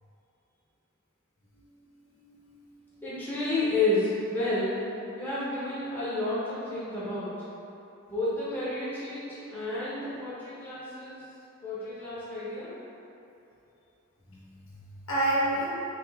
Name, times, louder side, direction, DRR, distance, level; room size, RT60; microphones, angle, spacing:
voice 1, 1.6-3.0 14.3-15.6, right 1 dB, 65° left, -9 dB, 1.2 m, -32 dB
voice 2, 3.0-4.8 5.2-7.4 8.1-11.2 11.6-12.7, left 2 dB, 10° left, -11 dB, 0.9 m, -31 dB
5.2 x 2.4 x 3.5 m, 2.9 s
head